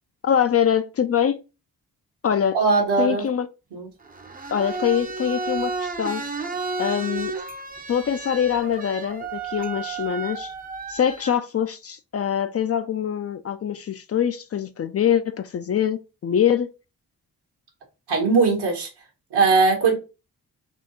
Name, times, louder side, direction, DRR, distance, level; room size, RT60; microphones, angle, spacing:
voice 1, 0.2-1.4 2.2-2.6 3.0-3.5 4.5-6.2 6.8-7.3 7.9-10.5 10.9-16.7, left 8 dB, 35° left, 0.4 m, -24 dB
voice 2, 2.5-3.2 3.7-3.9 18.1-18.9 19.3-19.9, right 4 dB, 75° right, 1.4 m, -19 dB
sound 1, 4.0-11.3, right 4 dB, 20° right, 0.6 m, -32 dB
4.3 x 2.3 x 3.0 m
supercardioid pair, 40°, 41 cm